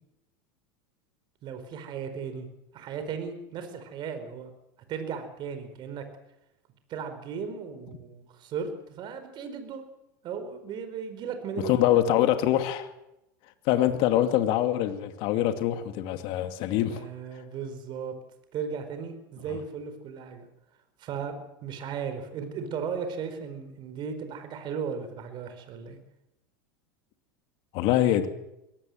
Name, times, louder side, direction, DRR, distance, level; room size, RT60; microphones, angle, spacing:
voice 1, 1.4-2.5 2.7-4.5 4.9-6.0 6.9-9.8 10.2-11.9 16.9-18.1 18.5-20.5 21.0-26.0, right 6 dB, 45° right, 4.7 m, -36 dB
voice 2, 11.6-12.9 13.6-17.1 19.5-19.6 27.7-28.3, left 12 dB, 60° left, 2.5 m, -24 dB
22.0 x 17.5 x 7.9 m
hypercardioid pair, 100°, 11 cm